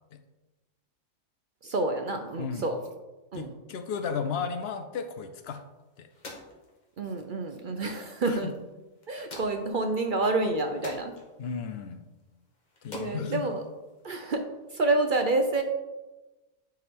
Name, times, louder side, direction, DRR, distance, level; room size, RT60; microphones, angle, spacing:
voice 1, 1.6-2.8 3.3-3.5 7.0-8.5 9.1-11.1 12.9-13.6 14.0-14.5 14.7-15.6, right 2 dB, 55° right, 6 dB, 0.6 m, -28 dB
voice 2, 2.4-2.7 3.3-5.6 6.0-6.1 8.2-8.5 9.2-9.4 11.4-12.0 12.8-13.4, left 6 dB, 60° left, 9 dB, 0.8 m, -34 dB
sound 1, 5.4-14.4, left 2 dB, 35° left, 1.3 m, -49 dB
9.6 x 4.6 x 3.6 m, 1.1 s
omnidirectional pair, 1.4 m